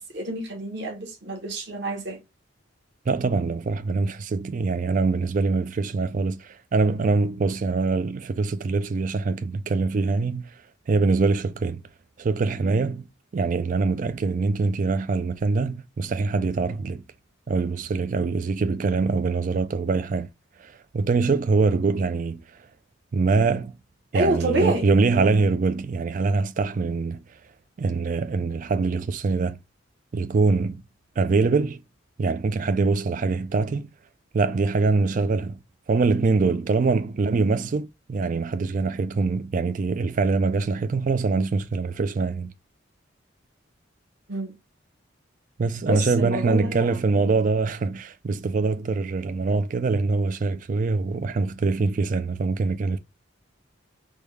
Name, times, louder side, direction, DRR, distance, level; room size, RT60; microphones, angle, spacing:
voice 1, 0.0-2.2 24.1-24.9 37.2-37.4 44.3-44.5 45.8-47.2, right 1 dB, 60° right, 1.1 m, -28 dB
voice 2, 3.1-10.5 10.9-11.8 12.2-13.0 13.3-17.0 17.5-20.3 20.6-22.4 23.1-23.7 24.1-27.2 27.8-29.6 30.1-30.8 31.2-31.8 32.2-33.9 34.3-35.6 35.9-42.5 45.6-53.0, right 4 dB, 40° right, 0.3 m, -24 dB
3.5 x 2.3 x 3.1 m
head